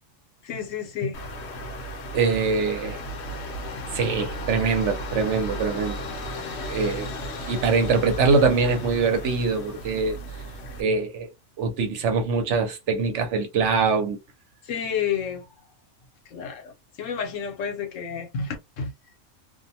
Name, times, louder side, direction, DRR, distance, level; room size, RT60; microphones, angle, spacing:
voice 1, 0.4-1.2 6.6-6.8 14.6-15.5 16.3-16.7 17.0-18.9, left 7 dB, 80° left, 1.1 m, -30 dB
sound 1, 1.1-10.8, equal, 65° left, 0.9 m, -34 dB
voice 2, 2.1-3.0 3.9-6.0 6.3-7.1 7.5-10.2 10.8-11.3 11.6-14.2, right 4 dB, 70° right, 1.0 m, -23 dB
2.5 x 2.1 x 2.7 m
omnidirectional pair, 1.3 m